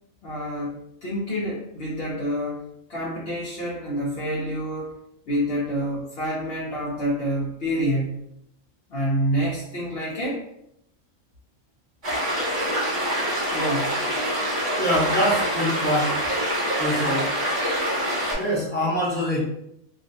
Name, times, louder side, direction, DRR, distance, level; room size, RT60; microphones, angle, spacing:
voice 1, 0.2-2.6 2.9-4.9 5.3-8.3 8.9-10.4 13.5-13.9, equal, 60° left, -6 dB, 0.7 m, -27 dB
sound 1, 12.0-18.3, equal, 40° right, 1.1 m, -25 dB
voice 2, 14.8-16.2 16.8-17.3 18.4-19.4, equal, 10° left, -7 dB, 0.7 m, -24 dB
2.6 x 2.0 x 2.6 m, 0.78 s
omnidirectional pair, 1.4 m